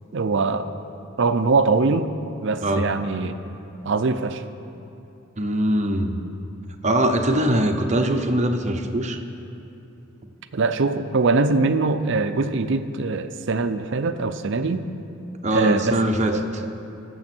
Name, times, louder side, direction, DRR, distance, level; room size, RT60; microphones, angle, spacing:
voice 1, 0.1-0.7 1.2-2.1 2.4-3.4 3.8-4.4 10.5-14.9 15.5-16.0 16.3-16.4, right 3 dB, 65° right, 10 dB, 0.6 m, -22 dB
voice 2, 5.4-6.2 6.8-9.2 15.4-16.4, right 1 dB, 35° right, 5 dB, 0.8 m, -22 dB
21.0 x 7.2 x 4.4 m, 2.8 s
head